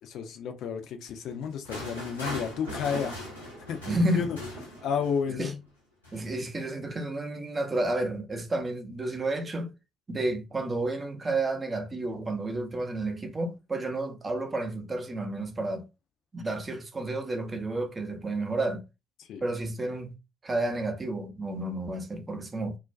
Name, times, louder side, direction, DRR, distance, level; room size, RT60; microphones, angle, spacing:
voice 1, 0.0-3.2 3.6-4.4 4.8-5.6 19.2-19.4, left 7 dB, 55° left, 0.4 m, -32 dB
sound 1, 1.2-5.3 6.0-6.3, left 1 dB, 90° left, 0.7 m, -40 dB
Thunder, 2.7-5.7, right 2 dB, 80° right, 0.7 m, -44 dB
voice 2, 3.9-4.3 5.3-5.5 6.1-9.7 10.1-15.9 16.3-18.8 19.4-20.1 20.4-22.8, right 2 dB, 30° right, 0.6 m, -31 dB
2.3 x 2.1 x 2.4 m
figure-of-eight pair, 45°, 0 cm